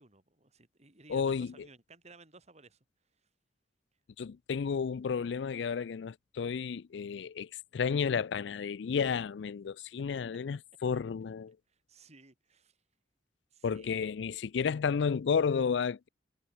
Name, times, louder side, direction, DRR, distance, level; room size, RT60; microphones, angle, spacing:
voice 1, 0.0-2.8 11.7-12.8 13.5-14.0, right 3 dB, 40° right, 4.0 m, -57 dB
voice 2, 1.1-1.5 4.2-11.6 13.6-16.1, left 6 dB, 75° left, 0.4 m, -32 dB
head